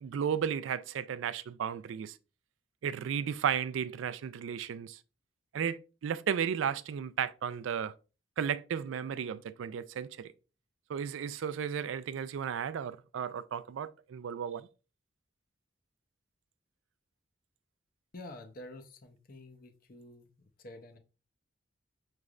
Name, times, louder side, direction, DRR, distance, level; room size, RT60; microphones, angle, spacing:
voice 1, 0.0-2.2 2.8-5.0 5.5-7.9 8.4-10.3 10.9-14.7, right 8 dB, 85° right, 0.3 m, -34 dB
voice 2, 18.1-21.0, left 1 dB, 45° left, 0.6 m, -49 dB
6.3 x 3.2 x 2.4 m
head